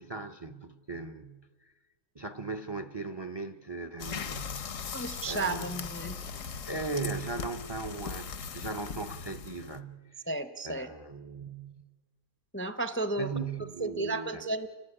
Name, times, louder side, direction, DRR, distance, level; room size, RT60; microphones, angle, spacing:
voice 1, 0.0-1.4 2.1-5.8 6.6-10.2 10.6-11.8 13.2-14.5, right 3 dB, 25° right, 0.6 m, -38 dB
sound 1, 4.0-9.8, left 6 dB, 75° left, 1.4 m, -39 dB
voice 2, 4.9-6.2 10.3-10.9 12.5-13.3 13.8-14.7, right 2 dB, 10° left, 0.6 m, -33 dB
30.0 x 12.5 x 9.9 m
omnidirectional pair, 1.3 m